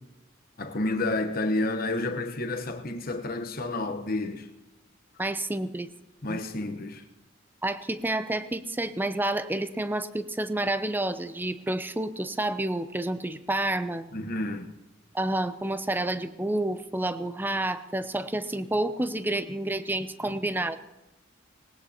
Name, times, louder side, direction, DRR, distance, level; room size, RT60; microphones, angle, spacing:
voice 1, 0.6-4.5 6.2-7.0 14.1-14.7 20.2-20.3, left 2 dB, 45° left, 1.0 m, -30 dB
voice 2, 5.2-5.9 6.3-6.4 7.6-14.1 15.1-20.8, right 1 dB, 10° right, 0.5 m, -29 dB
19.0 x 19.0 x 2.9 m
head